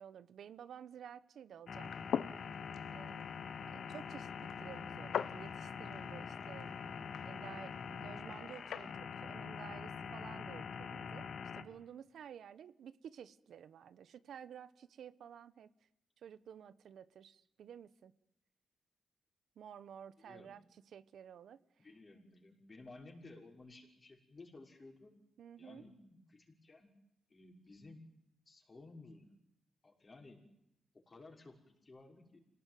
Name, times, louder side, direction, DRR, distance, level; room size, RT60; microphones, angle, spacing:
voice 1, 0.0-1.9 2.9-3.2 3.6-6.7 7.2-15.7 16.2-18.1 19.6-20.6 20.9-21.6 25.4-25.8, right 8 dB, 80° right, 15 dB, 1.1 m, -53 dB
sound 1, 1.7-8.9, left 8 dB, 85° left, 1.0 m, -44 dB
sound 2, 1.7-11.6, left 6 dB, 65° left, 2.3 m, -45 dB
voice 2, 20.2-20.5 21.8-25.2 25.6-26.9 27.3-28.0 28.5-29.3 29.8-30.4 30.9-32.4, left 2 dB, 35° left, 3 dB, 6.1 m, -56 dB
27.5 x 18.0 x 9.4 m, 0.82 s
cardioid pair, 105°, 0 cm